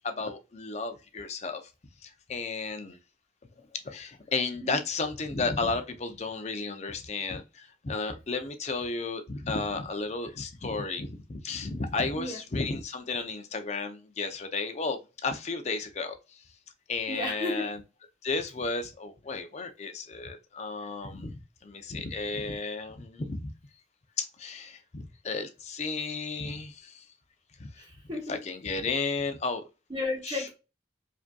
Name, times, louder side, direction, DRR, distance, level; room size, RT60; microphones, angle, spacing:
voice 1, 0.0-1.6 2.0-3.0 3.8-16.4 16.9-17.8 18.2-23.5 24.2-27.0 27.6-27.8 28.3-29.6 30.3-30.4, left 3 dB, 35° left, 0.5 m, -33 dB
voice 2, 17.1-17.7 27.8-28.4 29.9-30.5, left 2 dB, 25° right, 1.2 m, -33 dB
4.8 x 2.7 x 2.2 m
head